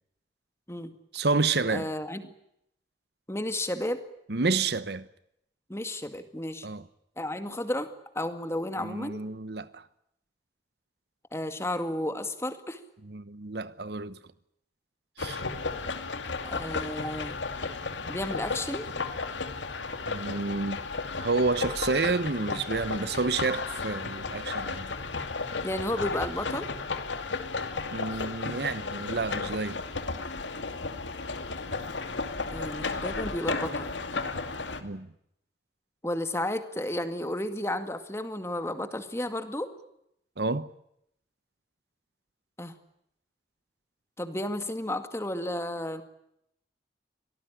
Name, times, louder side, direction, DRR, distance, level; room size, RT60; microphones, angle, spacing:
voice 1, 1.1-1.9 4.3-5.1 6.6-6.8 8.8-9.8 13.1-14.2 15.2-15.4 20.1-20.8 21.2-24.9 27.9-29.8 34.8-35.1 40.4-40.7, right 3 dB, 60° right, 1.0 m, -29 dB
voice 2, 1.7-2.2 3.3-4.0 5.7-6.7 7.2-9.2 11.3-12.8 16.4-17.4 18.1-18.9 25.6-26.7 32.5-33.9 36.0-39.7 42.6-42.8 44.2-46.0, left 1 dB, 15° left, 2.1 m, -32 dB
sound 1, 15.2-34.8, left 4 dB, 90° left, 2.5 m, -34 dB
25.0 x 18.5 x 10.0 m
head